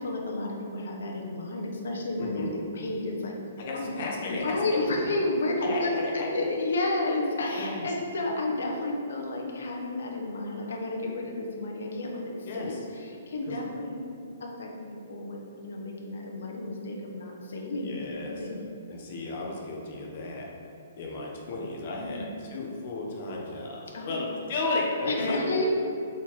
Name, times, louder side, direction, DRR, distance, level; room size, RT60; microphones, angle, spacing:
voice 1, 0.0-3.4 3.7-4.0 4.3-14.1 14.4-18.6 22.0-22.3 23.9-24.2 25.0-25.6, left 2 dB, 75° left, 0 dB, 1.4 m, -31 dB
voice 2, 2.2-2.5 3.6-4.9 5.6-6.3 7.5-7.8 12.5-12.8 13.5-13.6 17.8-18.5 18.9-20.5 21.0-22.2 22.5-25.4, left 2 dB, 50° left, -1 dB, 1.5 m, -33 dB
6.9 x 4.7 x 4.3 m, 2.6 s
hypercardioid pair, 150°, 0 cm